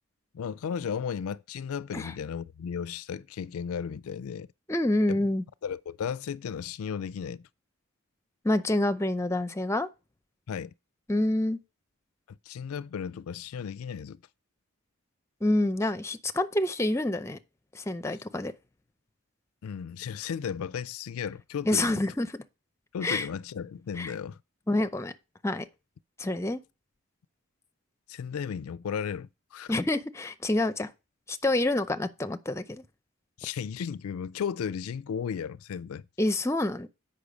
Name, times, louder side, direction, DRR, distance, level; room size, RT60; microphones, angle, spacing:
voice 1, 0.3-4.5 5.1-5.2 5.6-7.5 10.5-10.7 12.3-14.2 19.6-22.0 22.9-24.4 28.1-29.7 33.4-36.1, left 7 dB, 85° left, 0.4 m, -35 dB
voice 2, 4.7-5.4 8.4-9.9 11.1-11.6 15.4-17.4 17.7-18.5 21.6-22.3 23.0-23.3 24.0-24.1 24.7-25.1 25.4-25.7 26.2-26.6 29.7-30.9 31.3-32.8 36.2-36.9, left 1 dB, 15° left, 0.5 m, -27 dB
8.3 x 5.5 x 5.1 m
head